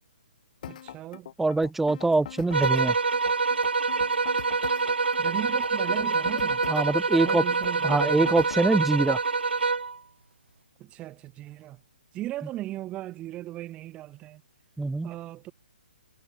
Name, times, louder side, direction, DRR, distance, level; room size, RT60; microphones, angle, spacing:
sound 1, 0.6-8.7, left 10 dB, 50° left, 3.0 m, -42 dB
voice 1, 0.7-1.3 5.2-6.6 7.1-8.3 10.8-11.8 12.1-14.4 15.0-15.5, right 15 dB, 20° right, 6.0 m, -37 dB
voice 2, 1.4-2.9 6.7-7.4 7.8-9.2 14.8-15.1, right 3 dB, 5° right, 1.2 m, -24 dB
sound 2, 2.5-10.0, right 4 dB, 80° right, 0.9 m, -26 dB
figure-of-eight pair, 135°, 5 cm